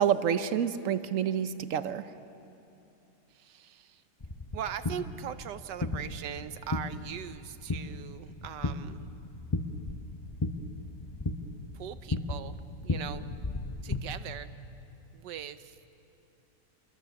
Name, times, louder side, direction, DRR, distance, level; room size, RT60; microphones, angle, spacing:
voice 1, 0.0-2.1, right 9 dB, 55° right, 12 dB, 1.0 m, -28 dB
voice 2, 3.3-4.0 4.5-9.0 11.7-12.6 12.8-13.2 13.8-14.5 15.1-15.8, right 9 dB, 75° right, 12 dB, 1.4 m, -40 dB
sound 1, 4.2-14.0, left 2 dB, 25° left, 0.6 m, -36 dB
27.0 x 21.5 x 7.1 m, 2.7 s
omnidirectional pair, 1.9 m